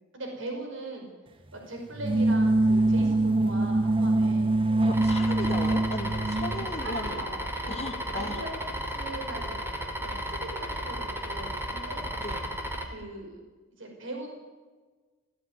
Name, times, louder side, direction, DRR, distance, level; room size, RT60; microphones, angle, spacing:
voice 1, 0.1-1.1 1.5-4.5 6.5-7.8 8.1-8.5 8.9-10.5 10.7-12.1 12.8-13.4 13.8-14.3, right 2 dB, 80° right, 2 dB, 5.4 m, -40 dB
sound 1, 1.9-6.7, right 2 dB, 25° right, 0.6 m, -24 dB
voice 2, 4.8-7.1 7.7-8.4 12.2-12.5, left 2 dB, 35° left, 2 dB, 2.2 m, -36 dB
sound 2, 4.9-12.9, equal, 10° right, 3.0 m, -34 dB
17.5 x 16.0 x 9.5 m, 1.3 s
head